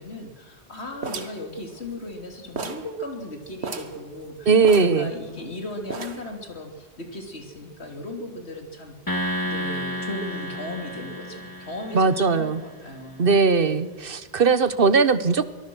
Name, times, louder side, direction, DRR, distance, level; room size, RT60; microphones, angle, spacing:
voice 1, 0.0-13.8, left 1 dB, 80° left, 3 dB, 3.2 m, -37 dB
sound 1, 1.0-2.2 2.6-2.9 3.2-3.3 3.6-4.0 4.6-5.5 5.9-6.4, right 4 dB, 90° right, 1.7 m, -34 dB
voice 2, 4.5-5.1 11.9-12.6 13.2-15.4, right 4 dB, 60° right, 13 dB, 1.2 m, -19 dB
sound 2, 9.1-12.5, equal, 20° left, 2.1 m, -31 dB
24.0 x 18.5 x 6.2 m, 1.4 s
omnidirectional pair, 1.1 m